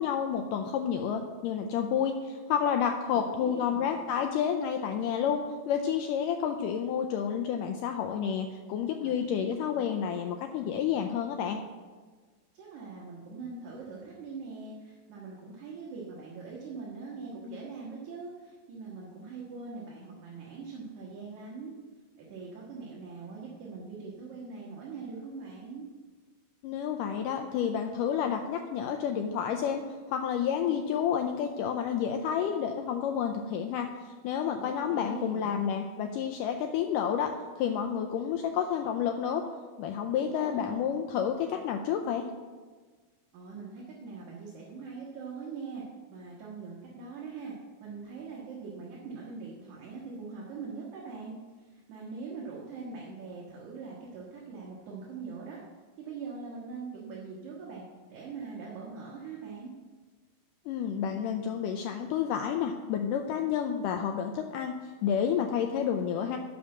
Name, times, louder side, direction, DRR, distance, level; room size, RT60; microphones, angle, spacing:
voice 1, 0.0-11.6 26.6-39.4 39.8-42.3 60.7-64.7 65.0-66.4, left 8 dB, 85° left, 5 dB, 1.9 m, -30 dB
voice 2, 3.1-3.9 9.0-9.5 12.5-21.7 22.2-25.9 34.6-35.6 40.1-40.7 43.3-45.8 46.1-47.5 47.8-55.6 56.0-57.8 58.1-59.7, right 4 dB, 60° right, -5 dB, 2.5 m, -42 dB
8.6 x 6.5 x 7.2 m, 1.4 s
omnidirectional pair, 4.3 m